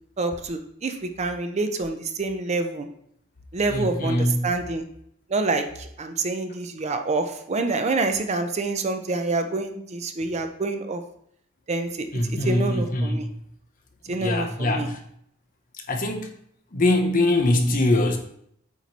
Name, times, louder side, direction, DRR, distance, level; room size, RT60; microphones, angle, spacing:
voice 1, 0.2-2.9 3.5-4.2 4.4-4.8 5.3-11.0 11.7-12.1 12.5-13.2 14.1-14.9, right 3 dB, 35° right, 7 dB, 0.5 m, -27 dB
voice 2, 3.7-4.4 12.1-13.4 14.1-15.0 15.7-16.3 16.7-18.2, left 1 dB, 40° left, 3 dB, 0.8 m, -23 dB
8.2 x 3.1 x 4.0 m, 0.69 s
head